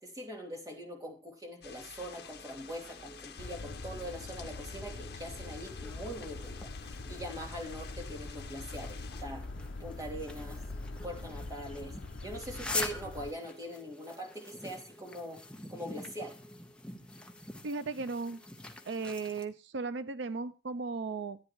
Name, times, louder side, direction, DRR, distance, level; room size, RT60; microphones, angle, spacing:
voice 1, 0.0-9.5 9.8-10.6 11.0-11.9 12.2-15.4 15.7-16.4, equal, 20° right, 0 dB, 3.2 m, -42 dB
sound 1, 1.6-9.2, left 6 dB, 60° left, 1.8 m, -50 dB
sound 2, 2.0-19.4, left 2 dB, 5° left, 1.1 m, -46 dB
sound 3, 3.4-13.3, left 2 dB, 80° left, 0.7 m, -43 dB
voice 2, 17.6-18.4 18.9-21.4, right 4 dB, 75° right, 13 dB, 0.5 m, -36 dB
14.0 x 9.5 x 3.1 m, 0.33 s
head